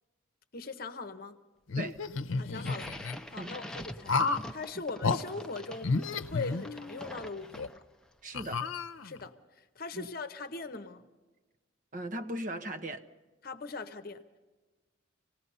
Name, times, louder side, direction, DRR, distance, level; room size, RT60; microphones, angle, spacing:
voice 1, 0.5-1.4 2.4-5.9 6.3-7.8 9.0-11.0 13.4-14.4, left 3 dB, 50° left, 0.9 m, -41 dB
sound 1, 1.7-3.2 4.1-4.5 5.0-5.2 5.8-7.1 7.6-7.7 8.3-9.3, left 4 dB, 85° left, 0.7 m, -31 dB
sound 2, 2.5-8.0, left 1 dB, 5° left, 0.6 m, -45 dB
voice 2, 8.2-8.6 9.9-10.1 11.9-13.0, right 1 dB, 40° right, 1.0 m, -38 dB
26.0 x 18.5 x 5.5 m
head